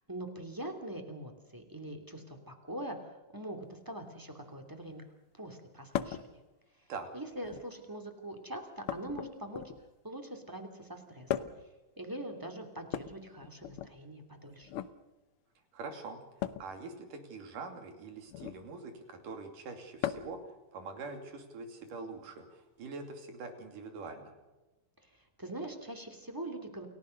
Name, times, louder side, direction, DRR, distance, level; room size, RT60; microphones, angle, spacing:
voice 1, 0.1-5.0 5.3-6.4 7.1-9.6 10.0-11.5 12.0-14.7 25.0-26.9, right 1 dB, 5° right, 4 dB, 2.4 m, -43 dB
sound 1, 5.9-6.3 7.3-7.8 8.9-10.0 11.3-11.7 12.8-13.9 14.6-14.9 16.4-16.7 18.3-18.6 20.0-20.4 21.9-22.0 23.2-23.3, left 11 dB, 75° left, 1.2 m, -37 dB
voice 2, 15.7-16.2 16.6-24.3, right 4 dB, 80° right, 6 dB, 4.3 m, -44 dB
29.0 x 16.5 x 6.6 m, 1.1 s
omnidirectional pair, 3.7 m